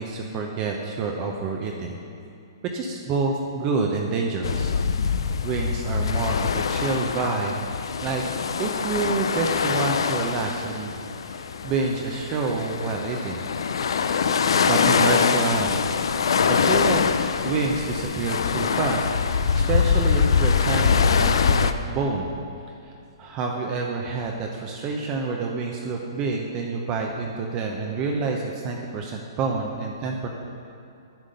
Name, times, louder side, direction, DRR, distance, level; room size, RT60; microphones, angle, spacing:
voice 1, 0.0-2.0 2.7-4.7 5.4-7.6 8.0-8.2 8.6-11.0 11.2-13.4 14.7-16.0 16.5-17.0 17.4-22.3 23.2-30.3, right 4 dB, 30° right, 1 dB, 0.7 m, -28 dB
sound 1, 4.4-21.7, left 6 dB, 75° left, 0.4 m, -23 dB
10.0 x 3.7 x 6.7 m, 2.6 s
hypercardioid pair, 145°, 3 cm